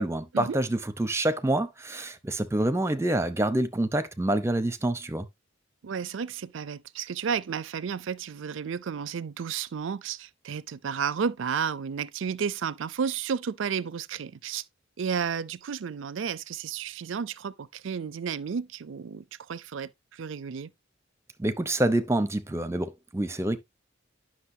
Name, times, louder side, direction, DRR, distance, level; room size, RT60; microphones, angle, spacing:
voice 1, 0.0-5.3 21.4-23.6, right 1 dB, 15° right, 0.7 m, -27 dB
voice 2, 5.8-14.6 15.0-20.7, right 6 dB, 70° right, 0.4 m, -32 dB
10.0 x 6.2 x 2.7 m
head